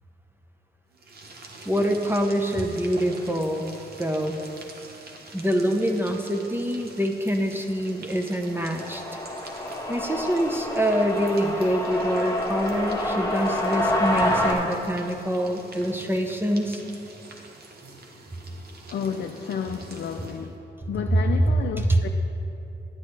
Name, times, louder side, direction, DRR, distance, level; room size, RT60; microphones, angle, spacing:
sound 1, 0.9-20.6, right 2 dB, 60° right, 1.1 m, -46 dB
voice 1, 1.7-3.7 4.0-4.4 5.3-9.2 9.9-16.8, equal, 10° right, 3 dB, 0.7 m, -25 dB
sound 2, 8.7-14.5, left 1 dB, 20° left, 1.4 m, -27 dB
voice 2, 18.9-22.1, left 7 dB, 65° left, 5 dB, 0.4 m, -32 dB
9.8 x 9.7 x 3.3 m, 2.8 s
cardioid pair, 90°, 18 cm